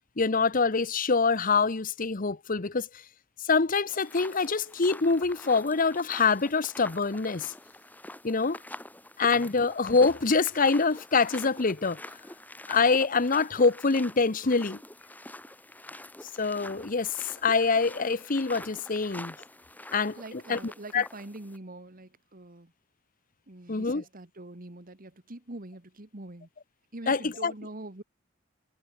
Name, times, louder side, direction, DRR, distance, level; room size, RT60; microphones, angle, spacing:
voice 1, 0.2-2.9 3.4-7.5 8.2-8.6 9.2-12.0 12.7-14.8 16.4-19.3 19.9-21.1 23.7-24.0 27.1-27.5, left 4 dB, 45° left, 1.0 m, -25 dB
sound 1, 3.9-21.6, left 1 dB, 10° left, 6.3 m, -46 dB
voice 2, 20.2-22.7 23.5-26.5 26.9-28.0, right 2 dB, 45° right, 1.9 m, -44 dB
head